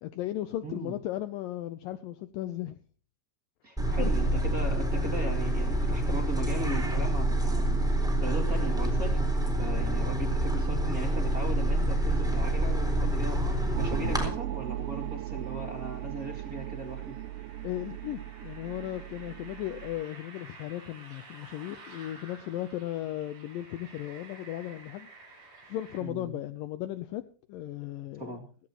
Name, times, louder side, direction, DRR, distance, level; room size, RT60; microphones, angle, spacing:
voice 1, 0.0-2.8 4.0-4.1 17.6-25.1 25.7-27.2 27.5-28.4, left 13 dB, 75° left, 2.1 m, -36 dB
voice 2, 0.6-1.0 3.6-7.8 8.2-17.2 26.0-26.4 28.2-28.4, right 2 dB, 25° right, 2.5 m, -38 dB
sound 1, 3.8-14.2, right 1 dB, ahead, 3.5 m, -27 dB
sound 2, 11.0-26.0, right 3 dB, 55° right, 7.8 m, -53 dB
sound 3, 13.7-20.0, right 14 dB, 90° right, 2.9 m, -38 dB
17.5 x 17.0 x 3.0 m
omnidirectional pair, 4.6 m